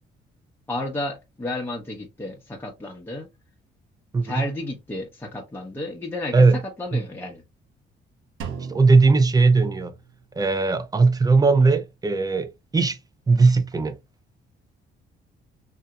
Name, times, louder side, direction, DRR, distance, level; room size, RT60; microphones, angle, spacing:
voice 1, 0.7-3.3 4.2-7.4, left 1 dB, 10° left, 0.8 m, -32 dB
voice 2, 4.1-4.4 6.3-6.6 6.9-7.0 8.7-9.9 10.4-13.0 13.3-14.0, right 3 dB, 20° right, 0.6 m, -18 dB
Drum, 8.4-10.3, right 6 dB, 80° right, 0.8 m, -37 dB
3.8 x 2.7 x 2.2 m
cardioid pair, 90°, 20 cm